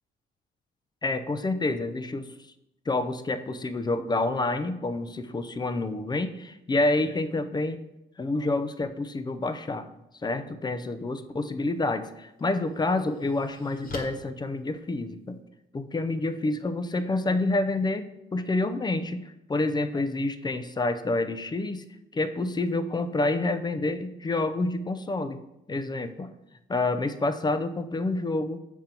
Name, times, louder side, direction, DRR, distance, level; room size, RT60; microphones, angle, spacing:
voice 1, 1.0-2.3 2.9-7.8 8.2-9.9 10.2-15.4 15.7-21.8 22.1-25.4 25.7-26.3 26.7-28.6, left 2 dB, 20° left, 10 dB, 0.5 m, -28 dB
sound 1, 11.7-11.8 12.4-15.4, left 3 dB, 45° left, 1.2 m, -44 dB
7.1 x 3.8 x 4.4 m, 0.88 s
cardioid pair, 90°, 20 cm